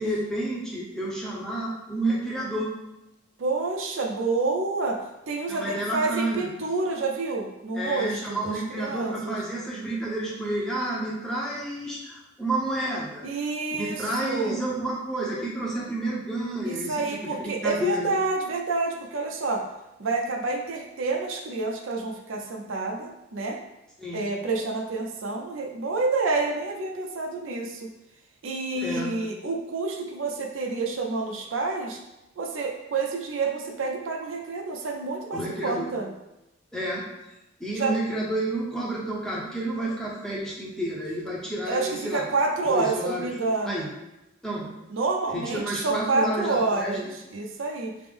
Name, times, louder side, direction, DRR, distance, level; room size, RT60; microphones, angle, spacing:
voice 1, 0.0-2.7 5.5-6.5 7.7-13.3 13.7-18.1 24.0-24.2 28.7-29.1 35.3-36.0 36.7-37.0 37.6-42.2 42.7-43.3 43.6-43.9 44.4-44.7 45.3-47.0, right 1 dB, 5° left, -5 dB, 0.7 m, -30 dB
voice 2, 3.4-5.0 5.3-9.4 13.2-14.6 16.6-19.6 20.0-23.6 24.1-27.9 28.4-32.0 32.4-36.1 37.7-37.9 41.7-43.8 44.9-47.9, right 3 dB, 75° right, 2 dB, 0.5 m, -28 dB
5.0 x 2.0 x 3.5 m, 0.94 s
head